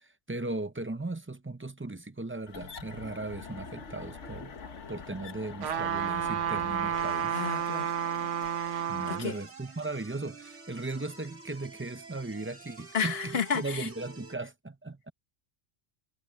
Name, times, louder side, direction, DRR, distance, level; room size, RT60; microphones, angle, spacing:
voice 1, 0.0-4.5 4.9-7.4 8.9-15.1, right 2 dB, 15° right, 0.5 m, -37 dB
sound 1, 2.5-8.9, left 5 dB, 80° left, 1.7 m, -45 dB
sound 2, 5.6-9.3 9.8-9.9, right 9 dB, 85° right, 1.2 m, -31 dB
sound 3, 6.9-14.3, right 3 dB, 70° right, 3.7 m, -49 dB
voice 2, 7.3-8.0 9.1-9.4 12.9-13.9, left 7 dB, 60° left, 1.4 m, -31 dB
omnidirectional pair, 1.2 m